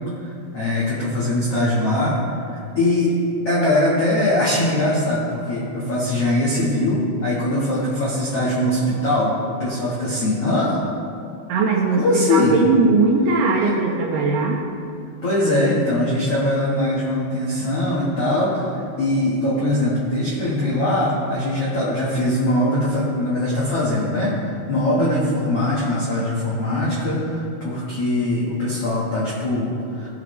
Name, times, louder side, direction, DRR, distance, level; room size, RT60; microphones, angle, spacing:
voice 1, 0.2-3.1 3.4-10.8 11.9-12.5 13.6-13.7 15.2-18.7 19.0-30.1, left 1 dB, 90° left, -8 dB, 1.3 m, -21 dB
voice 2, 11.5-14.6, right 4 dB, 80° right, -1 dB, 2.4 m, -19 dB
17.5 x 6.0 x 3.2 m, 2.5 s
omnidirectional pair, 5.4 m